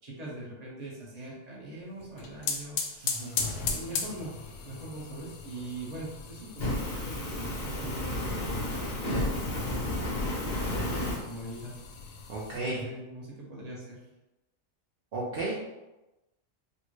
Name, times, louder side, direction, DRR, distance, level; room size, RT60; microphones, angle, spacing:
voice 1, 0.0-3.4 3.6-4.4 4.6-11.7 12.5-14.0, right 2 dB, 30° right, -4 dB, 0.8 m, -43 dB
sound 1, 2.0-12.6, left 5 dB, 80° left, 1.1 m, -38 dB
voice 2, 3.0-3.4 12.3-12.8 15.1-15.5, right 2 dB, 60° right, -6 dB, 0.6 m, -33 dB
Fire, 6.6-11.2, left 1 dB, 50° left, 0.5 m, -31 dB
4.3 x 2.1 x 3.1 m, 1.0 s
omnidirectional pair, 1.6 m